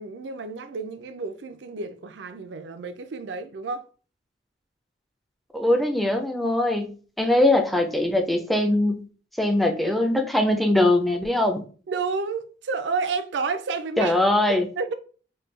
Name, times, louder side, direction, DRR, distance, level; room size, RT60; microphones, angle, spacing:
voice 1, 0.0-3.9 11.9-14.2 14.8-14.9, right 4 dB, 70° right, 0.4 m, -30 dB
voice 2, 5.5-9.1 9.4-11.6 14.0-14.7, left 1 dB, ahead, 0.4 m, -21 dB
3.2 x 2.2 x 3.1 m
head